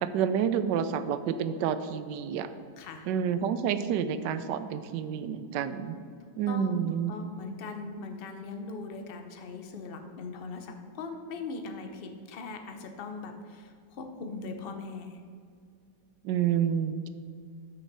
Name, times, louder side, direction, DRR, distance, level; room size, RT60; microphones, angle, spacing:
voice 1, 0.0-2.5 3.1-6.0 6.4-7.1 16.2-17.1, right 8 dB, 80° right, 11 dB, 1.2 m, -29 dB
voice 2, 2.8-3.1 6.5-15.2, left 4 dB, 55° left, 5 dB, 0.6 m, -40 dB
6.3 x 6.0 x 6.6 m, 2.2 s
omnidirectional pair, 1.9 m